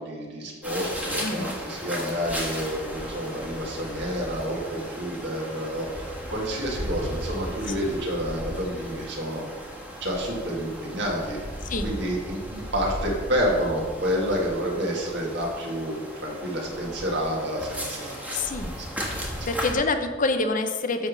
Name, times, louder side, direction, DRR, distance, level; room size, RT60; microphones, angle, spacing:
voice 1, 0.0-9.5 10.0-11.4 11.8-18.2 19.4-19.5, equal, 65° right, -2 dB, 2.1 m, -29 dB
sound 1, 0.6-19.7, equal, 10° right, 1.4 m, -36 dB
voice 2, 1.2-1.5 7.8-7.9 11.7-11.9 18.3-18.7 19.5-21.1, left 3 dB, 45° left, 7 dB, 0.7 m, -26 dB
10.5 x 3.6 x 6.3 m, 1.5 s
head